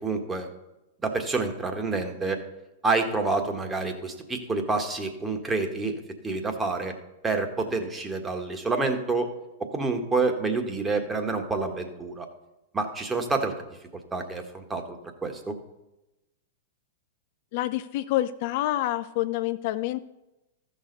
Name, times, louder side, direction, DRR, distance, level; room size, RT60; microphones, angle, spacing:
voice 1, 0.0-0.5 1.0-2.4 2.8-6.9 7.2-9.3 9.7-12.3 12.7-13.5 14.1-15.0 15.2-15.6, right 3 dB, 15° right, 5 dB, 1.6 m, -28 dB
voice 2, 17.5-20.0, left 15 dB, 50° left, 12 dB, 0.4 m, -27 dB
14.5 x 6.5 x 4.0 m, 0.97 s
hypercardioid pair, 105°, 0 cm